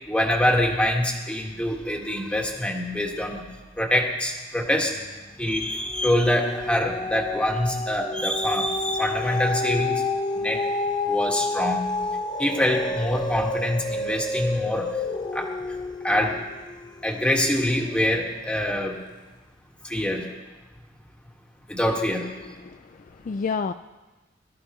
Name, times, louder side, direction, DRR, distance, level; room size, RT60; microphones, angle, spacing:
voice 1, 0.1-3.5 3.8-5.0 5.4-10.0 10.3-10.6 11.0-11.9 12.4-14.9 15.3-15.5 16.0-16.4 17.0-19.0 19.8-20.3 21.7-22.3, left 1 dB, 5° left, 0 dB, 1.8 m, -25 dB
sound 1, 4.9-5.4 5.7-18.2 18.8-18.9, left 2 dB, 25° left, 0.8 m, -30 dB
voice 2, 22.4-23.7, left 5 dB, 45° left, 9 dB, 0.3 m, -31 dB
22.0 x 13.5 x 3.1 m, 1.2 s
head